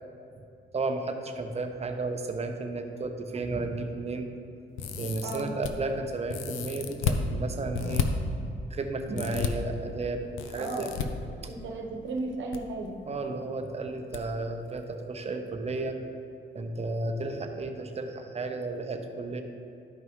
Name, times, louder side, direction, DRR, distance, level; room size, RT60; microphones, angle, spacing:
voice 1, 0.7-4.3 4.9-8.1 8.7-11.2 13.1-16.0 16.5-19.4, right 3 dB, 30° right, 5 dB, 0.8 m, -33 dB
sound 1, 4.8-5.7 6.3-7.2 7.7-8.0 9.1-9.5 10.4-11.0 12.2-12.6 12.8-12.9 14.1-14.2 14.6-14.7, left 8 dB, 90° left, 0.6 m, -31 dB
voice 2, 10.5-10.9 11.4-13.0, right 3 dB, 70° right, 2 dB, 1.1 m, -35 dB
12.0 x 5.4 x 3.1 m, 2.8 s
cardioid pair, 90°, 20 cm